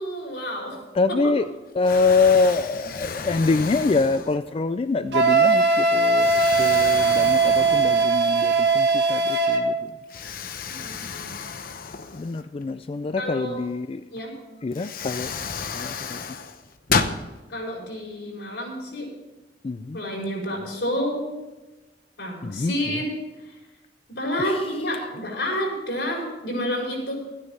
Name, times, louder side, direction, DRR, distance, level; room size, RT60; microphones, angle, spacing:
voice 1, 0.0-0.8 1.1-1.3 6.5-7.0 10.7-11.3 13.2-13.6 14.1-14.3 17.5-19.1 19.9-21.3 22.2-23.1 23.4-23.5 24.2-27.1, equal, 80° left, -1 dB, 4.9 m, -29 dB
voice 2, 1.0-1.5 1.8-9.9 12.1-14.0 14.6-15.3 15.7-16.2 19.6-20.0 22.4-22.7 24.4-24.6, left 4 dB, 35° left, 11 dB, 0.3 m, -25 dB
Explosion, 1.1-1.5 1.8-4.7 5.3-5.4 6.2-8.4 8.8-8.9 10.1-12.7 14.2-14.3 14.7-17.2, left 5 dB, 55° left, 0.8 m, -32 dB
Wind instrument woodwind instrument, 5.1-9.7, right 4 dB, 70° right, 1.4 m, -19 dB
13.5 x 9.7 x 5.5 m, 1.1 s
head